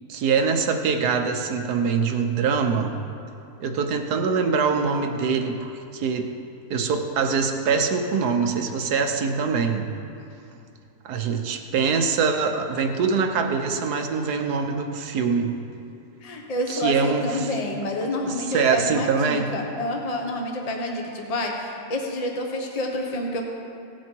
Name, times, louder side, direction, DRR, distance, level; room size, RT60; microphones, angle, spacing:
voice 1, 0.1-3.0 3.6-6.3 6.7-9.9 11.0-15.5 16.7-17.5 18.3-19.5, right 5 dB, 80° right, 5 dB, 1.4 m, -24 dB
voice 2, 16.2-23.5, left 1 dB, 25° left, 1 dB, 1.0 m, -28 dB
17.0 x 7.5 x 4.5 m, 2.6 s
omnidirectional pair, 1.7 m